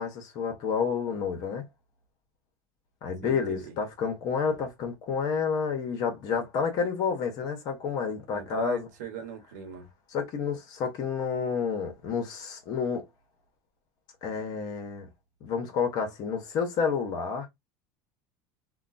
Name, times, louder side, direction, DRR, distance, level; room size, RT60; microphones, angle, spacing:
voice 1, 0.0-1.7 3.0-8.9 10.1-13.0 14.2-15.1 15.4-17.5, left 6 dB, 50° left, 1.0 m, -30 dB
voice 2, 3.2-3.7 8.3-9.9, right 5 dB, 90° right, 1.1 m, -39 dB
2.9 x 2.3 x 2.5 m
supercardioid pair, 130°, 9 cm